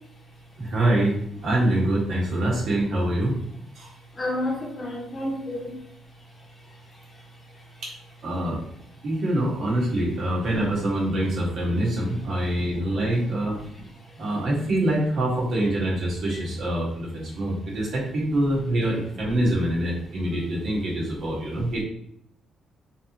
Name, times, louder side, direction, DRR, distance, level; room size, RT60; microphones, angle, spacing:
voice 1, 0.6-3.4 3.7-3.9 7.8-7.9 8.2-8.6 9.0-13.6 14.2-21.8, right 1 dB, 65° right, -4 dB, 1.6 m, -25 dB
voice 2, 4.1-5.8 6.7-7.1 7.5-7.6 12.0-13.1 13.7-14.2, left 1 dB, 30° left, -1 dB, 1.1 m, -33 dB
3.9 x 2.9 x 2.9 m, 0.70 s
cardioid pair, 90°, 0 cm